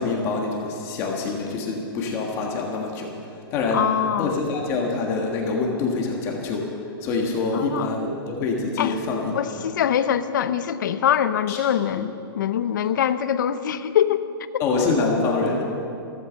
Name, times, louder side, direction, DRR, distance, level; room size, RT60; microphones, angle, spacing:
voice 1, 0.0-3.1 3.5-3.9 4.2-6.7 7.0-9.6 11.5-11.6 14.6-15.6, left 3 dB, 20° left, 0 dB, 1.7 m, -25 dB
voice 2, 3.7-4.4 7.5-7.9 8.8-9.0 9.3-14.2 14.5-14.9, left 9 dB, 50° left, 12 dB, 0.8 m, -23 dB
15.5 x 14.0 x 6.4 m, 2.5 s
hypercardioid pair, 165°, 13 cm